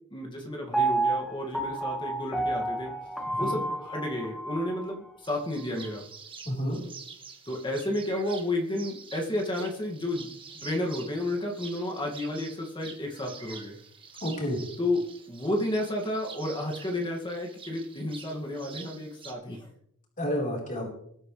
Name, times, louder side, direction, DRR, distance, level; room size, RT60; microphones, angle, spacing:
voice 1, 0.1-2.9 3.4-6.0 7.5-10.3 10.6-13.8 14.8-19.7, left 1 dB, 20° left, 0 dB, 2.2 m, -32 dB
Piano, 0.7-4.8 5.3-5.4, right 2 dB, ahead, 1.6 m, -30 dB
sound 1, 5.2-19.3, right 5 dB, 25° right, 1.5 m, -47 dB
voice 2, 6.4-6.8 14.2-14.6 20.2-20.9, equal, 40° left, -2 dB, 4.3 m, -30 dB
21.0 x 9.3 x 3.3 m, 0.72 s
head